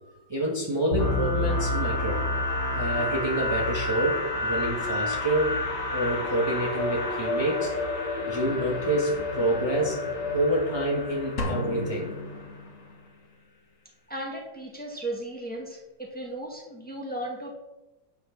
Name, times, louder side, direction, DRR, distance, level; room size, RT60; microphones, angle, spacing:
voice 1, 0.3-2.2 2.7-5.6 5.9-7.7 8.3-10.0 10.3-12.1, right 1 dB, 15° right, -3 dB, 1.6 m, -27 dB
sound 1, 0.9-12.7, left 2 dB, 70° left, 2.6 m, -30 dB
sound 2, 11.4-13.2, left 1 dB, 45° left, 1.4 m, -33 dB
voice 2, 14.1-15.8 16.1-17.5, right 1 dB, 5° left, -1 dB, 1.9 m, -35 dB
9.3 x 6.3 x 6.0 m, 1.0 s
omnidirectional pair, 1.9 m